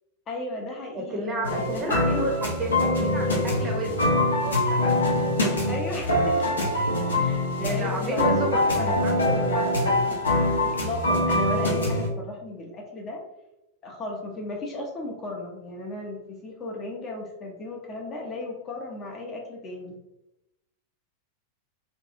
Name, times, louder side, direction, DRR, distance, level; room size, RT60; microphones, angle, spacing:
voice 1, 0.3-2.2 5.7-6.6 7.2-9.0 10.7-13.2 13.8-20.0, left 2 dB, 30° left, 0 dB, 0.5 m, -35 dB
voice 2, 0.9-5.1 7.6-10.0, right 1 dB, 20° right, 0 dB, 0.7 m, -31 dB
sound 1, 1.4-12.1, left 1 dB, 70° left, 0.6 m, -24 dB
2.6 x 2.3 x 2.6 m, 0.91 s
figure-of-eight pair, 90°, 0 cm